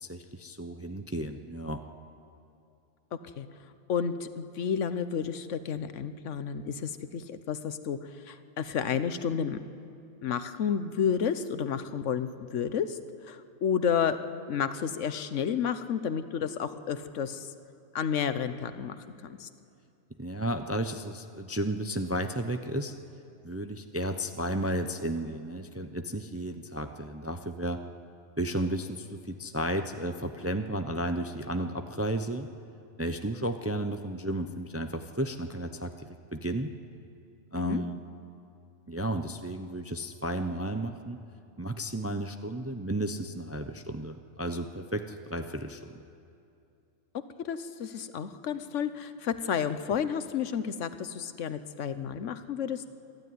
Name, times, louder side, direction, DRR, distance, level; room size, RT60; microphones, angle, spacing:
voice 1, 0.0-1.8 20.2-22.9 23.4-27.8 28.4-32.5 33.0-36.7 37.5-38.0 38.9-41.2 41.6-46.0, right 1 dB, 15° right, 7 dB, 0.5 m, -33 dB
voice 2, 3.9-8.0 8.2-9.6 10.2-13.0 13.3-14.2 14.5-17.5 17.9-19.0 19.2-19.5 37.6-37.8 47.4-52.8, left 7 dB, 75° left, 12 dB, 1.2 m, -31 dB
26.5 x 11.0 x 9.5 m, 2.6 s
omnidirectional pair, 1.3 m